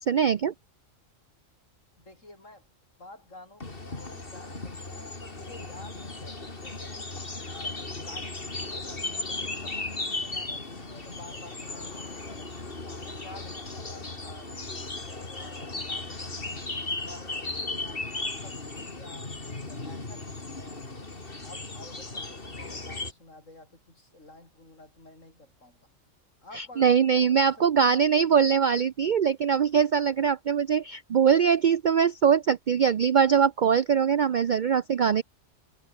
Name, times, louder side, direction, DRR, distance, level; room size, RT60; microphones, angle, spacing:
voice 1, 0.1-0.5 26.5-35.2, right 7 dB, 50° right, 0.6 m, -22 dB
voice 2, 2.0-2.7 3.0-7.1 7.5-12.5 12.8-15.0 15.3-16.7 17.0-21.1 21.4-25.8 26.4-28.6, left 2 dB, 85° left, 6.7 m, -50 dB
sound 1, 3.6-23.1, left 3 dB, 45° left, 3.2 m, -36 dB
sound 2, 10.5-16.9, left 3 dB, 70° left, 3.1 m, -51 dB
omnidirectional pair, 1.3 m